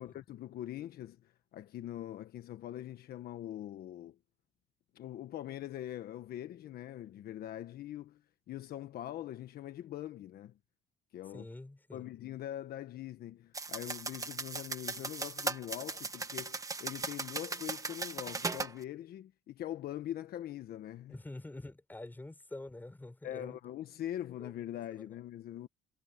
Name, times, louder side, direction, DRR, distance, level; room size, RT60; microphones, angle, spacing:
voice 1, 0.0-4.2 4.9-8.2 8.5-10.5 11.1-11.5 11.9-21.1 23.2-25.7, left 12 dB, 65° left, 1.3 m, -43 dB
voice 2, 11.3-12.1 21.1-23.6 24.4-24.5 25.0-25.1, left 2 dB, 10° left, 6.1 m, -46 dB
sound 1, 13.5-18.7, right 3 dB, 20° right, 1.4 m, -38 dB
cardioid pair, 110°, 17 cm